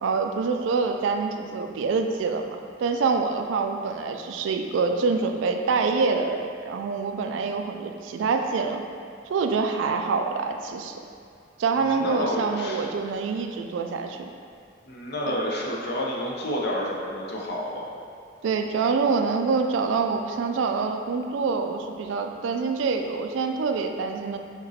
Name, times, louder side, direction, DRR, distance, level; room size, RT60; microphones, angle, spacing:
voice 1, 0.0-8.8 9.3-11.0 11.6-14.3 15.3-15.4 18.4-24.4, right 4 dB, 70° right, 5 dB, 0.3 m, -26 dB
voice 2, 11.8-12.9 14.9-17.8, left 1 dB, 55° left, -3 dB, 0.6 m, -30 dB
5.1 x 2.9 x 2.8 m, 2.3 s
head